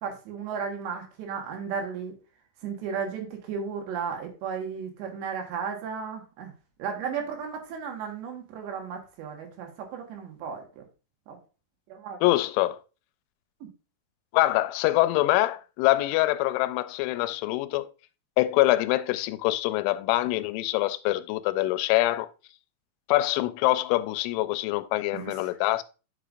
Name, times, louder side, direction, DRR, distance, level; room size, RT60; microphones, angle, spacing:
voice 1, 0.0-2.2 2.6-6.5 6.8-10.8 11.3-11.4 11.9-12.2 13.6-13.7 25.1-25.4, right 6 dB, 75° right, 3.6 m, -34 dB
voice 2, 12.2-12.8 14.3-17.9 18.4-22.3 23.1-25.8, left 17 dB, 90° left, 3.0 m, -24 dB
8.8 x 6.7 x 2.5 m
omnidirectional pair, 5.3 m